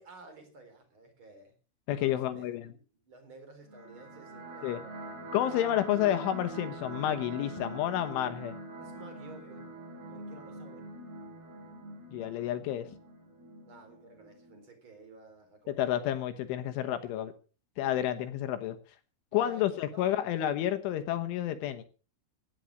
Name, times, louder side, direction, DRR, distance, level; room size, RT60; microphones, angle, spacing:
voice 1, 0.0-1.6 1.9-5.1 8.8-9.7 10.1-10.9 13.6-16.0 19.3-19.7 19.9-20.3, right 2 dB, 25° right, 7 dB, 4.1 m, -53 dB
voice 2, 1.9-2.7 4.6-4.8 5.3-8.6 12.1-12.9 15.7-17.3 17.8-18.8 19.3-21.8, left 12 dB, 75° left, 9 dB, 3.4 m, -30 dB
sound 1, 3.7-14.6, right 2 dB, 50° right, 7.4 m, -44 dB
16.5 x 11.0 x 6.4 m, 0.37 s
omnidirectional pair, 5.9 m